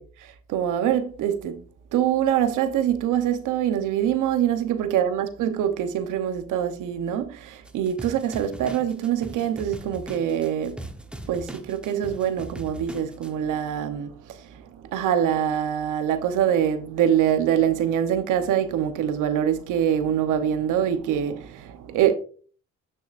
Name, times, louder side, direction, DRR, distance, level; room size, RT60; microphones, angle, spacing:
voice 1, 0.0-1.6 1.9-10.8 11.3-22.1, right 9 dB, 85° right, 1.0 m, -24 dB
sound 1, 7.7-13.3, right 1 dB, 5° right, 1.1 m, -40 dB
9.2 x 6.6 x 2.5 m
cardioid pair, 90°, 30 cm